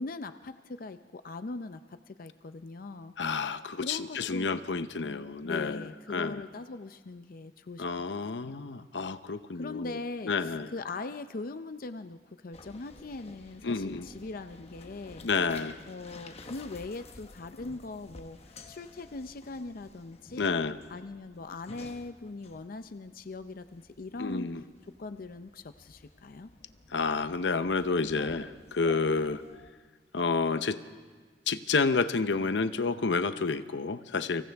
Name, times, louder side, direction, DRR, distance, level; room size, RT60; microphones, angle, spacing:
voice 1, 0.0-3.1 3.8-4.6 5.0-8.1 8.4-8.6 9.5-15.2 15.9-24.5 25.0-26.5, left 3 dB, 55° left, 10 dB, 0.6 m, -41 dB
voice 2, 3.2-6.4 7.8-10.0 10.2-10.7 13.6-14.1 15.2-15.8 20.4-20.8 24.2-24.6 26.9-29.4 30.1-30.8 31.5-34.4, left 4 dB, 85° left, 11 dB, 0.8 m, -30 dB
sound 1, 12.5-29.7, left 2 dB, 35° left, 1.0 m, -52 dB
30.0 x 25.0 x 3.5 m, 1.5 s
head